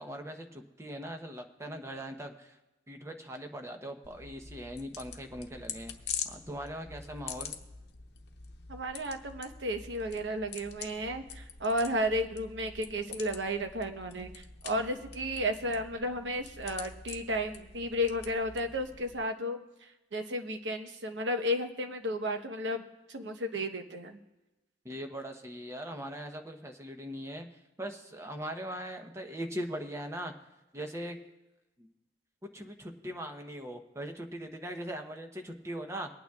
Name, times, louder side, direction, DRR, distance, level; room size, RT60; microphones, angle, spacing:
voice 1, 0.0-2.6 2.9-5.9 6.2-7.6 24.8-27.5 27.8-30.3 30.7-31.2 31.8-31.9 32.5-36.1, equal, 15° right, 4 dB, 0.9 m, -40 dB
sound 1, 4.0-19.2, left 7 dB, 60° left, 0.9 m, -45 dB
voice 2, 8.7-22.8 23.1-24.2, equal, 70° right, 6 dB, 1.0 m, -33 dB
24.0 x 9.0 x 2.4 m, 1.0 s
head